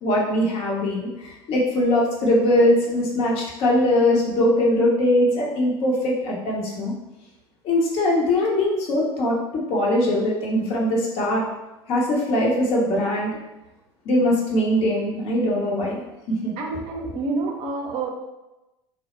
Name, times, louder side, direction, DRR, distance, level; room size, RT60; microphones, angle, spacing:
voice 1, 0.0-6.9 7.6-11.4 11.9-13.3 14.1-16.0 16.3-16.5, left 1 dB, 45° left, -3 dB, 0.7 m, -21 dB
voice 2, 16.6-18.1, right 3 dB, 45° right, 1 dB, 0.5 m, -28 dB
2.1 x 2.0 x 3.0 m, 1.0 s
figure-of-eight pair, 70°, 14 cm